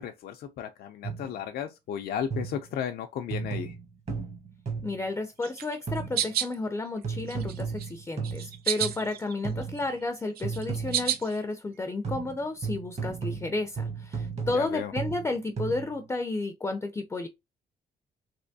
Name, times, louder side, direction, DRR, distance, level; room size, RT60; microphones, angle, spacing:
voice 1, 0.0-3.8 14.5-14.9, left 8 dB, 85° left, 0.4 m, -34 dB
sound 1, 1.0-1.4 2.3-2.8 3.3-5.1 5.9-6.3 7.0-9.1 9.4-9.9 10.4-11.2 12.0-16.0, right 5 dB, 45° right, 1.1 m, -35 dB
voice 2, 4.8-17.3, left 2 dB, 15° left, 0.4 m, -32 dB
sound 2, 5.4-6.5 7.0-7.9 8.2-9.3 9.6-11.4, right 10 dB, 85° right, 0.5 m, -31 dB
3.3 x 3.0 x 2.6 m
cardioid pair, 110°, 16 cm